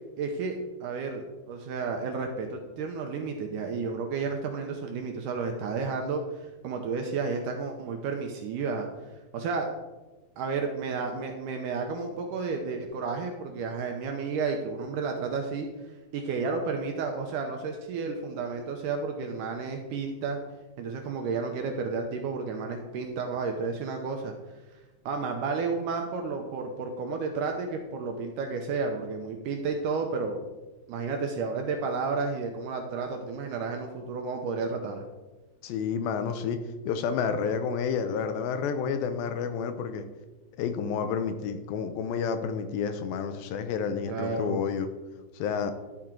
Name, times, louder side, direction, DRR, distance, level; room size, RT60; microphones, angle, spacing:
voice 1, 0.2-8.9 9.3-9.7 10.4-15.7 16.1-20.4 20.8-24.3 25.1-30.4 30.9-35.1 44.1-44.6, right 4 dB, 80° right, 3 dB, 2.0 m, -32 dB
voice 2, 35.6-36.6 36.9-40.1 40.6-44.9 45.3-45.7, left 6 dB, 80° left, 9 dB, 2.4 m, -30 dB
11.5 x 4.4 x 3.7 m, 1.1 s
omnidirectional pair, 4.2 m